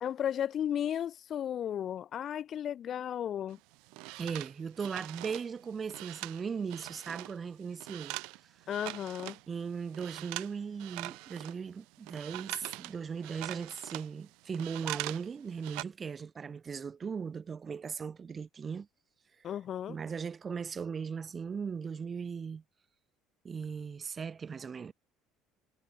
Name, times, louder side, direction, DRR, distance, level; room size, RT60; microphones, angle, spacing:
voice 1, 0.0-3.6 8.7-9.4 19.4-20.0, left 10 dB, 40° left, 0.5 m, -34 dB
sound 1, 3.5-9.5 9.8-10.5 10.8-15.3 15.5-15.8, right 27 dB, 80° right, 3.2 m, -42 dB
voice 2, 4.2-8.2 9.5-18.9 19.9-22.6 23.4-24.9, right 6 dB, 25° right, 0.6 m, -38 dB
cardioid pair, 140°, 0 cm